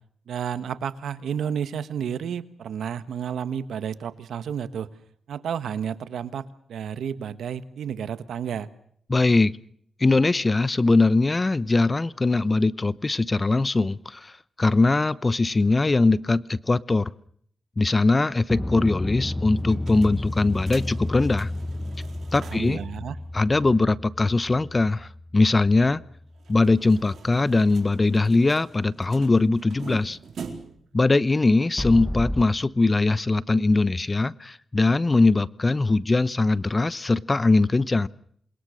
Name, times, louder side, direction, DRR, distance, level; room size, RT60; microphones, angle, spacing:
voice 1, 0.3-4.9 5.3-8.7 22.4-23.2, right 8 dB, 90° right, 13 dB, 1.4 m, -31 dB
voice 2, 9.1-9.5 10.0-14.3 14.6-17.1 17.8-21.5 22.3-22.8 23.3-26.0 26.5-30.2 30.9-38.1, left 3 dB, 30° left, 18 dB, 0.9 m, -21 dB
sound 1, 18.5-26.9 31.8-32.4, left 1 dB, 10° left, 1.1 m, -32 dB
sound 2, 19.6-22.8 23.2-23.3 23.5-23.6 26.4-30.9, right 5 dB, 75° right, 4.2 m, -44 dB
28.0 x 21.5 x 6.5 m, 0.64 s
cardioid pair, 65°, 0 cm